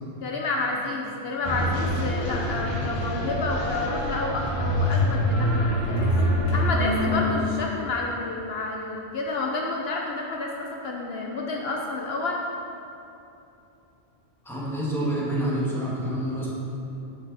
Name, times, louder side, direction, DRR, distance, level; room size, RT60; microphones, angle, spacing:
voice 1, 0.2-6.1 6.5-12.4, left 3 dB, 65° left, -1 dB, 0.9 m, -30 dB
sound 1, 1.4-7.7, left 1 dB, 30° left, 1.3 m, -25 dB
voice 2, 14.5-16.5, right 1 dB, ahead, -7 dB, 1.7 m, -27 dB
9.2 x 6.7 x 4.1 m, 2.8 s
omnidirectional pair, 1.1 m